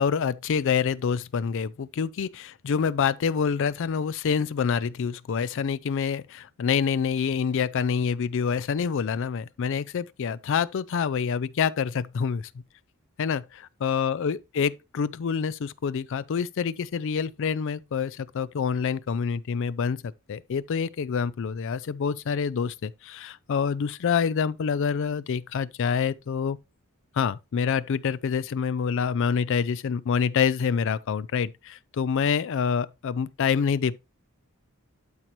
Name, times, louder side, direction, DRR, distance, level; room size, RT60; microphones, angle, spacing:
voice 1, 0.0-12.5 13.2-26.6 27.1-34.0, left 6 dB, 60° left, 0.4 m, -27 dB
12.0 x 4.5 x 3.0 m
head